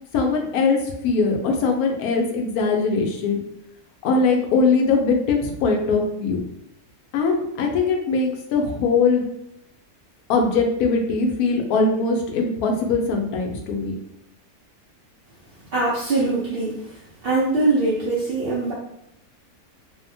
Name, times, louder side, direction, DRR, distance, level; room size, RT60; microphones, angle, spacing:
voice 1, 0.1-3.4 4.0-6.4 7.1-9.3 10.3-13.9, left 4 dB, 80° left, 2 dB, 1.1 m, -21 dB
voice 2, 15.7-16.8 17.2-18.7, right 2 dB, 65° right, -7 dB, 0.6 m, -22 dB
2.8 x 2.1 x 2.6 m, 0.79 s
omnidirectional pair, 1.6 m